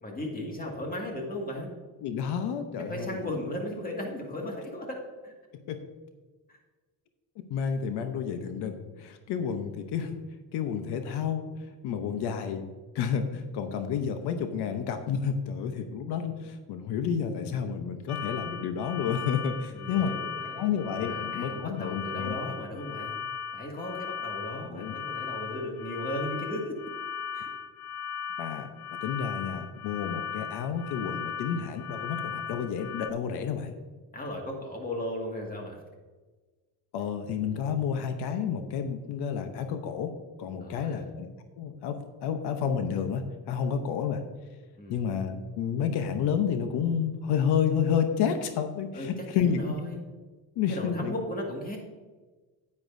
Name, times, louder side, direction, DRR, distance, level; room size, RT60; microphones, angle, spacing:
voice 1, 0.0-1.7 2.9-5.0 5.2-5.3 19.7-20.7 20.9-23.2 23.5-26.8 27.3-27.5 34.1-35.8 40.6-41.1 44.8-45.0 48.9-49.1 49.3-50.0 50.7-51.8, left 1 dB, 20° left, 0 dB, 2.0 m, -36 dB
voice 2, 2.0-3.3 5.5-5.8 7.5-10.2 10.5-11.4 11.8-12.7 12.9-20.1 20.6-22.5 24.7-24.9 28.4-28.7 29.0-33.7 36.9-40.1 40.4-41.3 41.6-44.2 44.9-49.6 50.6-51.1, left 7 dB, 85° left, 7 dB, 0.9 m, -30 dB
sound 1, 18.1-33.1, left 7 dB, 45° left, 0.5 m, -37 dB
9.7 x 9.5 x 2.7 m, 1.3 s
cardioid pair, 135°, 39 cm